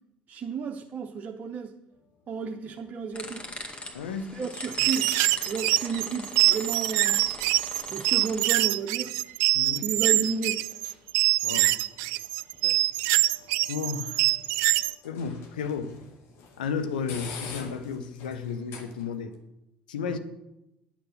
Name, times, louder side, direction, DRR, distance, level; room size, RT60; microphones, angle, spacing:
voice 1, 0.3-1.7 2.3-3.5 4.3-5.1 5.5-7.3 7.9-9.1 9.8-10.6 12.6-12.8 20.1-20.2, right 5 dB, 45° right, 0.8 m, -32 dB
sound 1, 1.9-19.4, left 5 dB, 65° left, 1.7 m, -49 dB
sound 2, 3.1-8.5, left 1 dB, 25° left, 2.1 m, -40 dB
voice 2, 3.9-4.3 9.5-9.9 11.4-11.8 13.7-14.3 15.0-16.0 16.6-19.3 19.9-20.2, left 6 dB, 85° left, 0.8 m, -33 dB
sound 3, 4.7-14.9, right 18 dB, 70° right, 0.4 m, -24 dB
10.5 x 7.1 x 6.4 m
hypercardioid pair, 60°, 5 cm